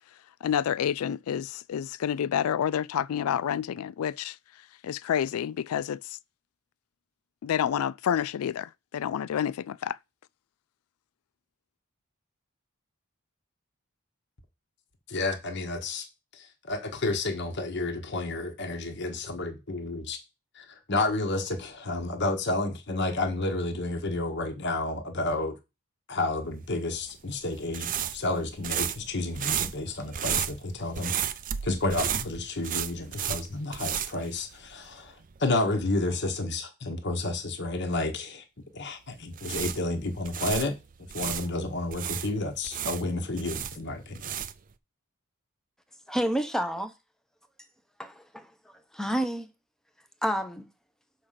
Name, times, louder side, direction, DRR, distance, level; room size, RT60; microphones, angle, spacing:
voice 1, 0.4-4.4 4.8-6.2 7.4-10.0, left 9 dB, 85° left, 0.3 m, -29 dB
voice 2, 15.1-16.1 16.3-20.2 20.5-25.5 26.1-31.1 31.6-38.4 38.7-40.8 41.1-44.3, left 2 dB, 55° left, 1.3 m, -31 dB
sound 1, 26.9-34.9 35.2-35.4 39.1-41.5 41.9-44.7, right 9 dB, 40° right, 0.4 m, -33 dB
voice 3, 46.1-46.9 48.0-48.5 48.9-49.5 50.2-50.7, equal, ahead, 0.8 m, -29 dB
6.5 x 4.9 x 5.7 m
head